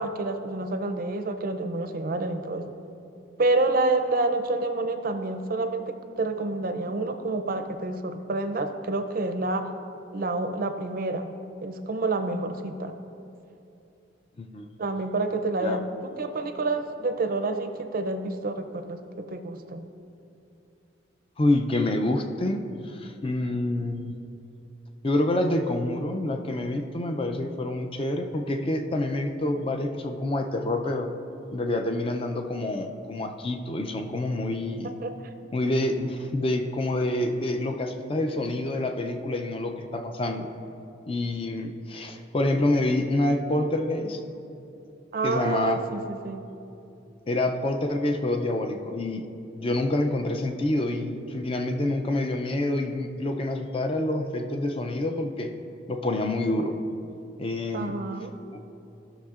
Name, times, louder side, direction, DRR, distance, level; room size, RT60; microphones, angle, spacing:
voice 1, 0.0-2.7 3.4-9.7 10.1-11.3 11.6-12.9 14.8-19.9 35.0-35.1 45.1-46.5 57.7-58.3, right 2 dB, 45° right, 8 dB, 0.5 m, -28 dB
voice 2, 21.4-24.2 25.0-31.1 31.5-34.9 35.5-40.5 41.1-44.2 45.2-45.8 47.3-49.3 49.5-55.5 55.9-56.8 57.4-58.0, left 1 dB, 25° left, 5 dB, 0.4 m, -27 dB
14.0 x 6.4 x 2.4 m, 2.7 s
head